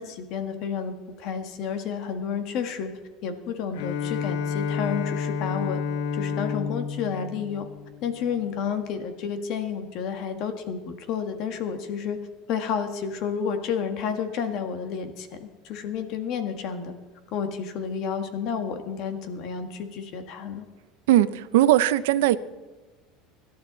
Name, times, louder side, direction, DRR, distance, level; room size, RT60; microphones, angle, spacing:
voice 1, 0.0-2.9 3.2-5.8 6.1-7.7 8.0-12.2 12.5-16.9 17.3-20.7, left 7 dB, 50° left, 7 dB, 1.7 m, -30 dB
Bowed string instrument, 3.7-8.5, left 6 dB, 85° left, 1.2 m, -30 dB
voice 2, 21.1-22.4, right 13 dB, 85° right, 14 dB, 0.8 m, -19 dB
25.5 x 12.5 x 4.1 m, 1.3 s
cardioid pair, 150°, 0 cm